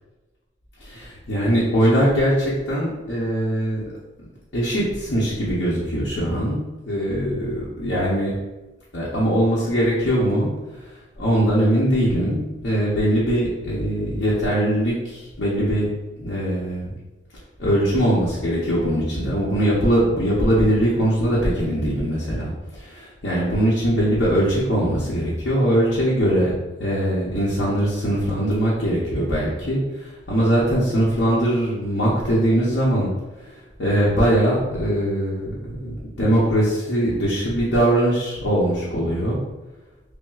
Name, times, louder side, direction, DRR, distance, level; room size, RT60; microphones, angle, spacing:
voice 1, 0.8-3.9 4.2-6.6 6.8-8.3 8.9-15.9 16.2-16.9 17.6-33.1 33.4-39.4, equal, 65° left, -7 dB, 0.8 m, -21 dB
5.5 x 2.1 x 2.3 m, 1.1 s
head